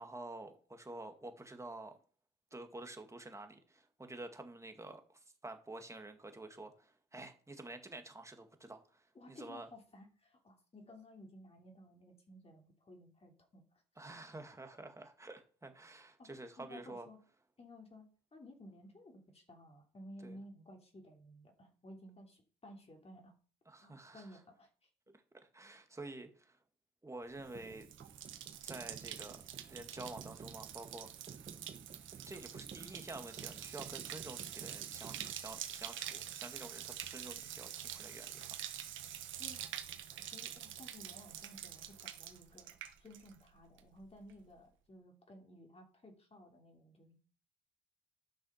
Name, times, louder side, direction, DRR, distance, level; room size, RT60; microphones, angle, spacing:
voice 1, 0.0-2.0 2.5-9.7 14.0-17.1 20.2-20.4 23.7-24.3 25.5-26.6 27.0-27.9 28.6-29.4 29.7-31.1 32.3-38.5, right 2 dB, 15° right, 6 dB, 2.0 m, -49 dB
voice 2, 9.1-13.6 16.2-16.3 16.6-17.2 17.6-23.3 23.8-24.7 39.4-39.6 40.2-47.2, left 1 dB, 30° left, 2 dB, 3.1 m, -56 dB
sound 1, 27.4-35.3, right 6 dB, 40° right, 1.1 m, -54 dB
Bathtub (filling or washing), 27.4-43.5 43.8-44.3, right 10 dB, 75° right, 1.3 m, -46 dB
12.0 x 6.2 x 5.8 m, 0.41 s
cardioid pair, 90°, 20 cm